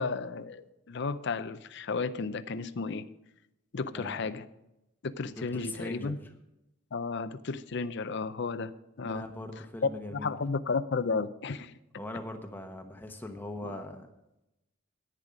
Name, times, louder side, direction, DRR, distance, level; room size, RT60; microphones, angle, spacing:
voice 1, 0.0-3.0 3.7-4.4 5.0-6.2 6.9-8.7 9.0-9.2 10.1-11.7 13.6-13.8, left 4 dB, 60° left, 12 dB, 0.5 m, -33 dB
voice 2, 5.3-6.3 9.0-10.3 12.0-14.1, left 1 dB, 10° left, 5 dB, 1.0 m, -41 dB
10.5 x 9.8 x 5.1 m, 0.89 s
head